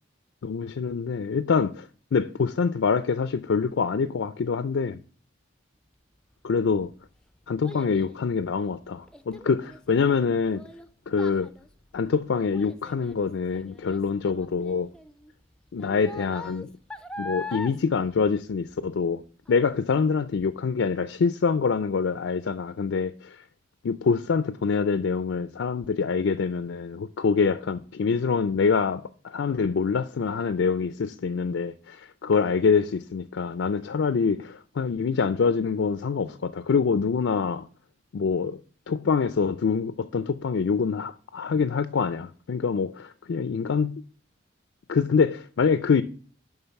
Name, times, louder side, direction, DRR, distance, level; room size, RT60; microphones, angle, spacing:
voice 1, 0.4-1.9 2.1-5.0 6.4-6.9 7.5-10.6 11.1-11.5 11.9-14.9 15.7-16.7 17.2-19.2 19.5-23.4 23.8-37.7 38.1-38.6 38.9-44.0 44.9-46.0, left 5 dB, 65° left, 0.4 m, -25 dB
Child speech kid speaking, 6.5-19.1 19.5-19.9 20.4-20.5, left 2 dB, 5° left, 0.4 m, -43 dB
11.0 x 3.8 x 5.7 m
head